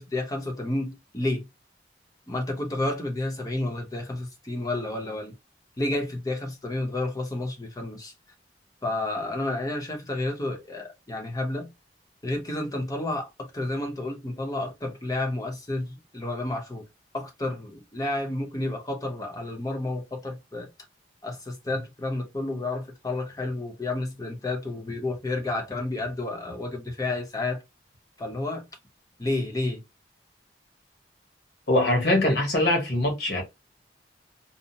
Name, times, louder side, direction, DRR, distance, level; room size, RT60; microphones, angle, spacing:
voice 1, 0.0-1.5 2.3-5.3 5.8-8.1 8.8-11.7 12.2-16.8 17.1-20.7 21.2-27.6 28.2-28.6 29.2-29.8, left 2 dB, 20° left, 0.7 m, -30 dB
voice 2, 31.7-33.4, left 1 dB, 60° left, 1.1 m, -22 dB
2.7 x 2.0 x 2.8 m
head